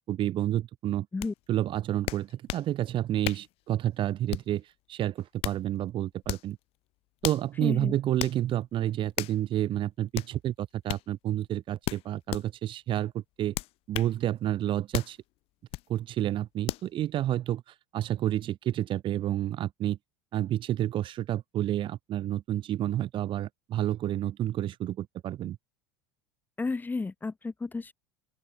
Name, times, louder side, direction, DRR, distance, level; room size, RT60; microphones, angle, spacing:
voice 1, 0.1-1.1 1.5-6.6 7.2-13.5 13.9-15.2 15.9-20.0 20.3-25.6, right 12 dB, 45° right, 1.2 m, -30 dB
sound 1, 1.2-1.3 2.1-2.7 3.2-3.5 4.3-4.6 5.2-5.6 6.2-6.5 7.2-7.5 8.2-8.4 9.2-9.4 10.1-10.3 10.9-11.1 11.8-12.5 13.5-14.1 14.9-15.2 15.7-15.9 16.7-16.9, left 19 dB, 55° left, 0.9 m, -34 dB
voice 2, 7.6-8.0 26.6-27.9, left 3 dB, 15° left, 1.1 m, -32 dB
open air
hypercardioid pair, 85°, 12 cm